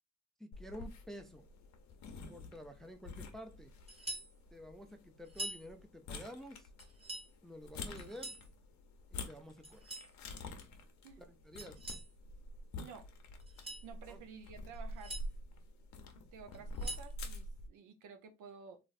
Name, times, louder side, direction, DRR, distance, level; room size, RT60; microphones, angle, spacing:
voice 1, 0.4-1.5 2.3-3.7 4.5-6.7 7.4-8.4 9.1-10.0 11.2-11.8 14.1-14.2, equal, ahead, 0.4 m, -50 dB
sound 1, 0.5-17.7, left 2 dB, 65° left, 0.7 m, -48 dB
sound 2, 3.9-4.3 5.3-5.6 6.8-7.3 8.0-8.5 9.6-10.1 11.6-12.1 13.4-13.9 14.7-15.3 16.5-17.1, right 1 dB, 20° right, 1.0 m, -44 dB
voice 2, 13.8-15.2 16.3-18.8, right 6 dB, 80° right, 0.7 m, -52 dB
3.0 x 2.5 x 2.4 m
cardioid pair, 90°, 30 cm